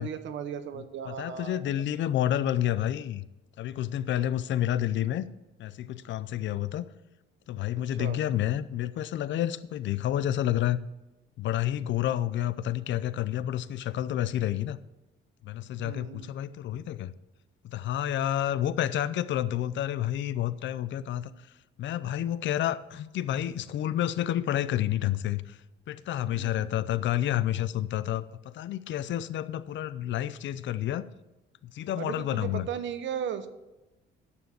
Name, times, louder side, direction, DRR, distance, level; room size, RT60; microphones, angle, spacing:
voice 1, 0.0-1.6 8.0-8.2 15.8-16.3 21.3-21.4 26.3-26.7 32.0-33.5, right 8 dB, 70° right, 10 dB, 1.0 m, -36 dB
voice 2, 1.0-3.2 3.6-5.3 5.6-6.8 7.5-10.8 11.4-14.8 15.4-17.1 17.6-21.3 21.8-25.6 25.9-31.0 31.6-32.7, left 12 dB, 70° left, 15 dB, 0.6 m, -29 dB
9.7 x 7.1 x 6.0 m, 1.0 s
cardioid pair, 90°, 20 cm